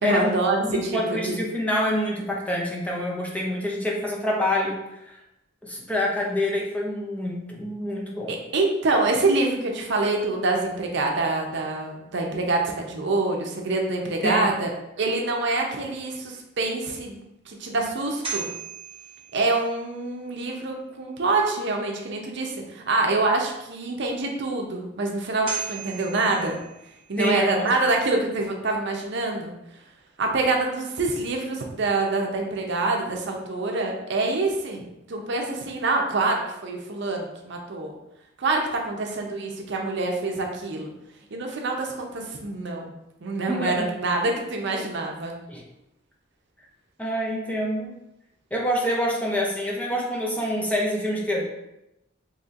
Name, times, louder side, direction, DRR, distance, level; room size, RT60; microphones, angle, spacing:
voice 1, 0.0-1.4 8.3-14.7 15.0-18.5 19.3-26.6 27.1-29.5 30.2-34.8 35.1-37.9 38.4-40.9 41.3-42.9 43.2-45.4, right 2 dB, 65° right, 1 dB, 0.6 m, -26 dB
voice 2, 0.6-5.2 5.6-8.4 14.2-14.5 27.2-27.7 43.5-43.9 45.5-45.6 47.0-47.9 48.5-51.5, left 1 dB, 5° left, -2 dB, 0.5 m, -26 dB
sound 1, 18.0-20.1 25.1-25.2 25.5-27.4, right 7 dB, 30° right, 0.9 m, -36 dB
4.2 x 3.0 x 2.4 m, 0.86 s
head